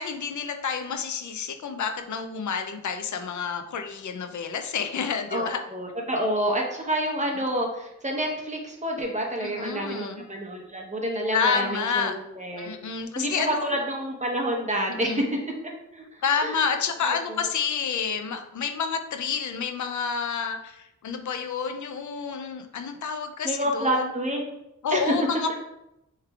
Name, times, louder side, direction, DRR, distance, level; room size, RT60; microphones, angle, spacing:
voice 1, 0.0-5.6 9.4-10.2 11.3-12.1 12.6-13.7 15.0-15.2 16.2-24.1 24.8-25.6, left 6 dB, 75° left, 7 dB, 0.5 m, -29 dB
voice 2, 5.3-15.4 15.6-16.7 17.1-17.5 23.4-24.5 24.9-25.1, right 1 dB, 25° right, 1 dB, 1.0 m, -29 dB
6.5 x 3.2 x 2.4 m, 0.87 s
wide cardioid pair, 80°, 30 cm